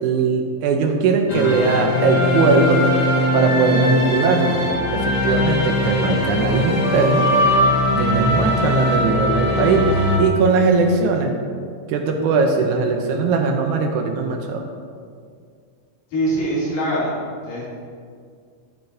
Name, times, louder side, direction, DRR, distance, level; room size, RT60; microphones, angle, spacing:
voice 1, 0.0-2.8 3.3-4.6 4.9-7.3 7.9-9.9 10.2-11.3 11.9-14.7, right 4 dB, 75° right, 4 dB, 2.0 m, -19 dB
sound 1, 1.3-10.2, left 1 dB, 60° left, 1.1 m, -20 dB
voice 2, 16.1-17.7, right 1 dB, 85° left, -8 dB, 4.6 m, -23 dB
12.5 x 9.4 x 2.7 m, 2.2 s
omnidirectional pair, 3.8 m